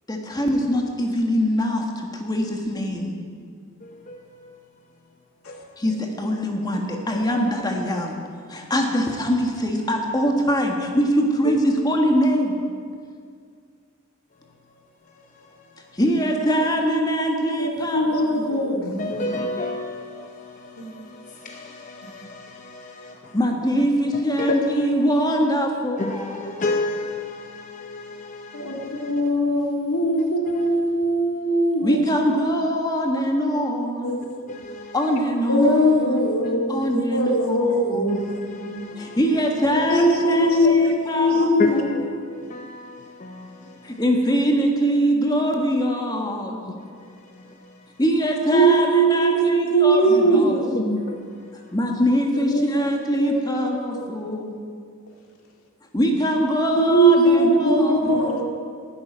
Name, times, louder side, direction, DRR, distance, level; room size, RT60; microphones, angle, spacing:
voice 1, 0.1-3.1 5.8-8.2 8.5-12.5 15.9-18.8 23.3-26.7 31.8-34.3 34.9-36.2 36.7-38.2 38.5-38.6 39.0-41.5 43.8-46.6 48.0-50.6 51.7-54.6 55.9-58.4, equal, 20° left, 2 dB, 1.4 m, -23 dB
voice 2, 3.8-4.4 5.5-5.8 7.1-7.2 11.5-11.6 19.0-22.8 24.4-24.7 26.0-29.1 34.5-34.9 38.1-39.2 40.4-40.8 41.6-43.8 50.7-51.5, left 2 dB, 35° left, 2 dB, 0.8 m, -31 dB
voice 3, 17.7-19.3 20.8-20.9 28.5-32.1 34.0-34.4 35.5-38.8 39.7-41.8 48.5-51.0 52.5-52.9 53.2-53.3 53.6-54.0 56.8-58.4, right 1 dB, 90° left, 1 dB, 2.1 m, -20 dB
12.0 x 7.9 x 9.6 m, 2.1 s
head